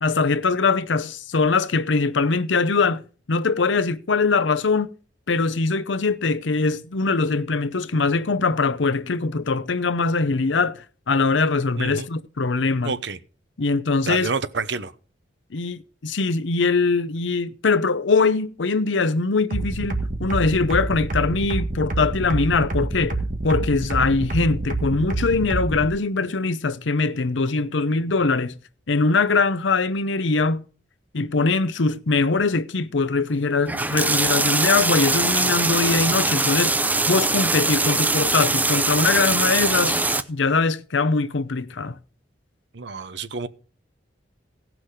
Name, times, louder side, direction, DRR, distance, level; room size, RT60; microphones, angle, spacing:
voice 1, 0.0-3.0 3.3-4.9 5.3-12.9 13.6-14.3 15.5-23.2 23.4-28.6 28.9-30.6 31.1-36.8 37.1-40.0 40.3-42.0, left 4 dB, 85° left, 0.7 m, -22 dB
voice 2, 11.8-12.1 12.8-13.2 14.0-14.9 42.7-43.5, right 4 dB, 70° right, 0.8 m, -28 dB
sound 1, 19.5-25.9, right 2 dB, 45° right, 1.6 m, -26 dB
sound 2, 33.7-40.2, right 3 dB, 10° right, 0.6 m, -22 dB
17.5 x 6.1 x 4.9 m
head